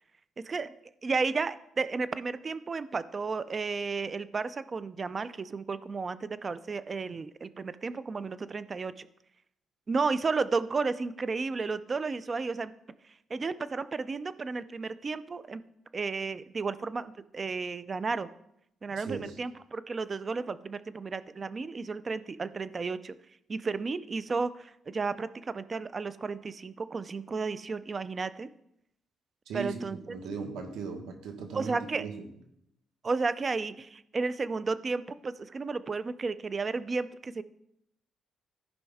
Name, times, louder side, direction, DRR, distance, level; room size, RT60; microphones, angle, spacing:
voice 1, 0.4-0.7 1.0-9.1 9.9-12.7 13.0-15.6 15.9-18.3 18.8-23.2 23.5-28.5 29.5-30.0 31.5-32.1 33.0-37.4, right 4 dB, 35° right, 15 dB, 0.4 m, -33 dB
voice 2, 19.0-19.4 29.5-32.2, right 5 dB, 90° right, 5 dB, 1.4 m, -38 dB
14.0 x 5.1 x 3.5 m, 0.79 s
cardioid pair, 90°, 0 cm